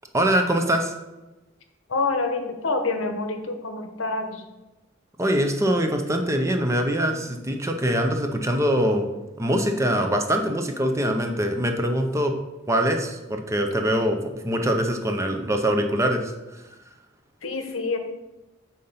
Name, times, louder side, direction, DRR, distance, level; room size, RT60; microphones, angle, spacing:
voice 1, 0.1-0.9 5.2-9.1 9.4-12.3 12.7-16.6, equal, 15° right, 4 dB, 0.6 m, -23 dB
voice 2, 1.9-4.4 17.4-18.0, left 3 dB, 80° left, 6 dB, 0.9 m, -27 dB
7.0 x 3.9 x 5.5 m, 1.1 s
head